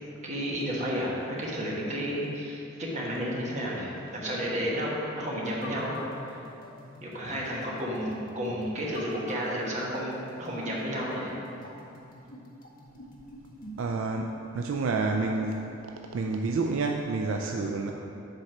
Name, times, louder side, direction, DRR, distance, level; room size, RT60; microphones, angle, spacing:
voice 1, 0.2-6.0 7.0-11.3, equal, 35° right, -5 dB, 1.4 m, -32 dB
sound 1, 5.4-13.9, equal, 45° left, 1.0 m, -46 dB
voice 2, 13.8-15.7 16.1-17.9, right 3 dB, 70° right, 2 dB, 0.4 m, -29 dB
7.9 x 4.2 x 5.9 m, 2.9 s
head